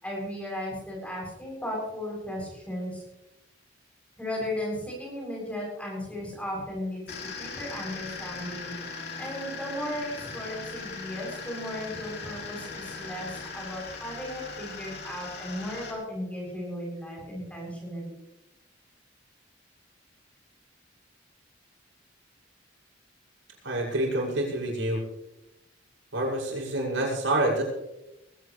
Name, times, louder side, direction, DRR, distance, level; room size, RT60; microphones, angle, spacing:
voice 1, 0.0-3.0 4.2-18.2, left 1 dB, 5° left, -3 dB, 7.7 m, -36 dB
sound 1, 7.1-15.9, left 4 dB, 60° left, 3.6 m, -39 dB
voice 2, 23.6-25.0 26.1-27.6, right 1 dB, 90° right, -2 dB, 6.5 m, -27 dB
20.5 x 17.0 x 3.3 m, 0.90 s
head